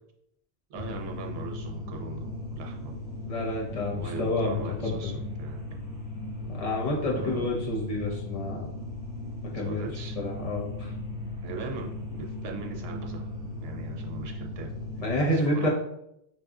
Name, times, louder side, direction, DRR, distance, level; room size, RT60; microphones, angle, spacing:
sound 1, 0.7-15.1, left 2 dB, 20° right, 0.8 m, -37 dB
voice 1, 0.7-3.0 3.9-5.8 7.2-7.5 9.5-10.2 11.4-14.7 15.3-15.7, right 4 dB, 70° right, 2 dB, 0.9 m, -40 dB
voice 2, 3.3-5.1 6.5-8.7 9.5-9.8 10.2-10.9 15.0-15.7, left 1 dB, 35° left, -3 dB, 0.9 m, -29 dB
5.2 x 2.5 x 2.3 m, 0.79 s
omnidirectional pair, 1.1 m